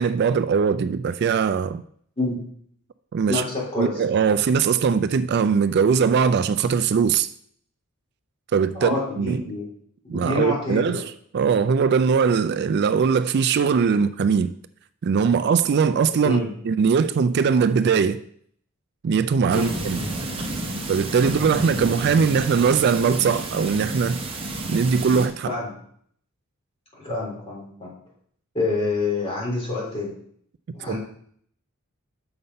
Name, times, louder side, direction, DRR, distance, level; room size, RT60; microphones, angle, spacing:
voice 1, 0.0-1.8 3.1-3.4 3.8-7.3 8.5-9.4 10.1-14.5 15.0-18.2 19.0-20.0 20.9-24.2 24.7-25.5 30.9-31.0, right 6 dB, 50° right, 0.3 m, -21 dB
voice 2, 3.3-4.0 8.7-9.7 10.0-11.0 16.2-16.5 19.5-20.1 25.4-25.8 26.9-27.9 28.5-30.1 30.7-31.0, left 3 dB, 25° left, 3.3 m, -27 dB
sound 1, 19.5-25.3, right 1 dB, 25° right, 1.1 m, -31 dB
6.8 x 5.6 x 5.3 m
head